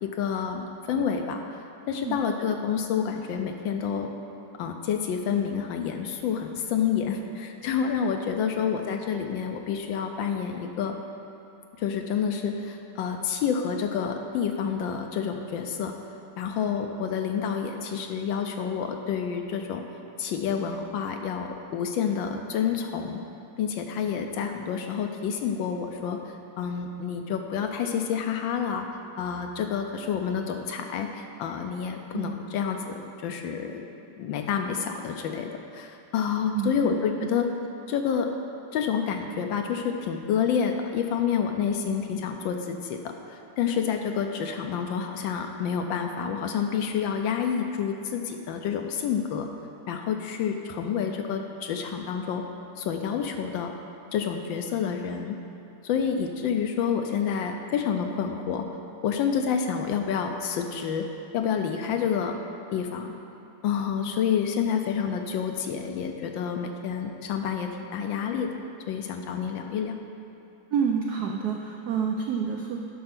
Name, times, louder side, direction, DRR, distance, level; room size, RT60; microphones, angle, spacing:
voice 1, 0.0-4.1 4.6-10.9 11.8-15.9 16.4-19.8 20.2-23.2 23.6-28.8 29.2-33.8 34.2-37.4 37.9-38.3 38.7-49.5 49.9-52.4 52.8-53.7 54.1-55.4 55.8-58.6 59.0-61.0 61.3-62.3 62.7-63.1 63.6-68.5 68.9-69.9, left 7 dB, 75° left, 5 dB, 1.3 m, -28 dB
voice 2, 36.5-36.9 37.2-37.4 70.7-72.8, right 6 dB, 80° right, 2 dB, 0.8 m, -29 dB
11.0 x 4.3 x 5.9 m, 2.8 s
omnidirectional pair, 2.3 m